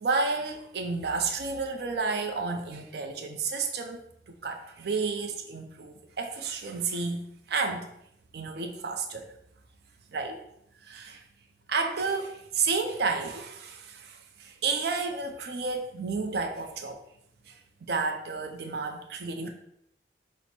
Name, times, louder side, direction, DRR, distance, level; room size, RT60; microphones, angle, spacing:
voice 1, 0.0-4.0 4.3-7.2 7.5-7.9 8.3-9.3 10.1-10.4 10.8-11.2 11.7-17.0 17.5-17.6 17.9-19.5, right 4 dB, 60° right, 4 dB, 0.5 m, -31 dB
5.6 x 2.1 x 4.3 m, 0.74 s
head